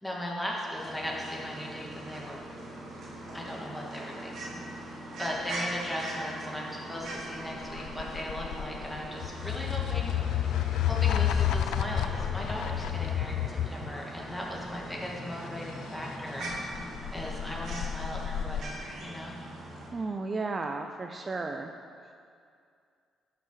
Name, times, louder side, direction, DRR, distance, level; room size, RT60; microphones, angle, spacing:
voice 1, 0.0-2.4 3.3-16.5 17.1-19.4, equal, 10° left, -3 dB, 2.0 m, -38 dB
sound 1, 0.7-19.9, right 1 dB, 70° right, 2.5 m, -42 dB
sound 2, 7.2-13.9 16.5-18.6, left 10 dB, 85° left, 0.3 m, -30 dB
sound 3, 10.0-17.7, left 2 dB, 30° left, 0.9 m, -45 dB
voice 2, 19.9-21.7 22.1-22.2, right 3 dB, 35° right, 5 dB, 0.5 m, -34 dB
11.5 x 6.0 x 4.7 m, 2.3 s
cardioid pair, 90°, 0 cm